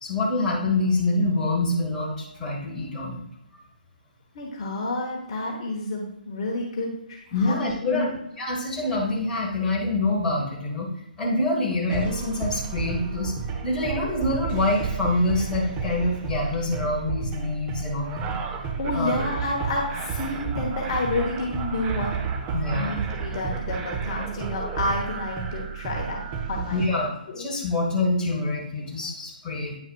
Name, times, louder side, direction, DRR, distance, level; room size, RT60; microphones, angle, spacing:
voice 1, 0.0-3.2 7.3-10.9 11.2-13.3 13.6-18.3 18.9-19.1 22.5-22.9 26.7-27.1 27.4-29.8, left 2 dB, 15° left, -4 dB, 1.6 m, -26 dB
voice 2, 4.3-8.1 18.8-22.1 22.7-26.2 26.5-27.4, left 2 dB, 40° left, -1 dB, 1.3 m, -30 dB
sound 1, 11.9-26.9, right 6 dB, 20° right, 0.7 m, -31 dB
9.0 x 6.3 x 2.4 m, 0.79 s
figure-of-eight pair, 135°, 5 cm